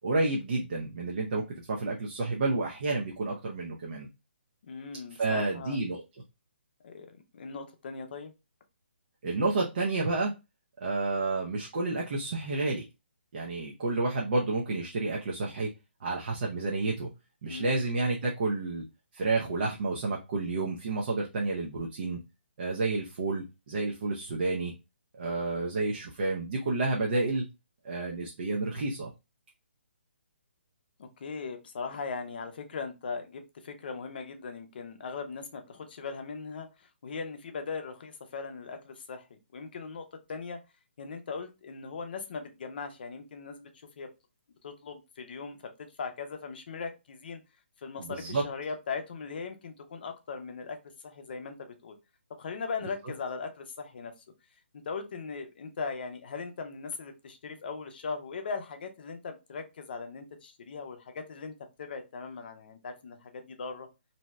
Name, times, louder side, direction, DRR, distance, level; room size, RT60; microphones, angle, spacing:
voice 1, 0.0-4.1 5.2-6.0 9.2-10.3 10.8-12.8 13.3-15.7 16.0-17.1 17.4-18.8 19.1-22.2 22.6-24.7 25.2-27.4 27.8-29.1 48.0-48.4, right 3 dB, 50° right, -1 dB, 0.6 m, -30 dB
voice 2, 4.6-5.8 6.8-8.3 17.4-17.8 31.0-40.6 41.0-43.7 44.0-44.1 44.6-47.4 47.8-50.8 51.0-52.0 52.4-54.1 54.7-61.5 61.8-63.9, left 5 dB, 50° left, 6 dB, 0.6 m, -39 dB
2.7 x 2.2 x 3.0 m, 0.26 s
hypercardioid pair, 155°, 7 cm